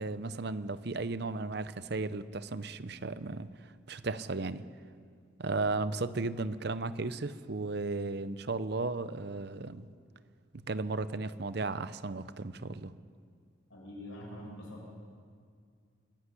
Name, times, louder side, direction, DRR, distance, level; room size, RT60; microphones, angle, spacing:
voice 1, 0.0-3.5 3.9-4.6 5.4-9.9 10.5-12.9, right 3 dB, 55° right, 14 dB, 0.7 m, -35 dB
voice 2, 13.7-14.9, left 1 dB, 90° left, -2 dB, 7.0 m, -45 dB
23.0 x 11.5 x 9.9 m, 2.1 s
head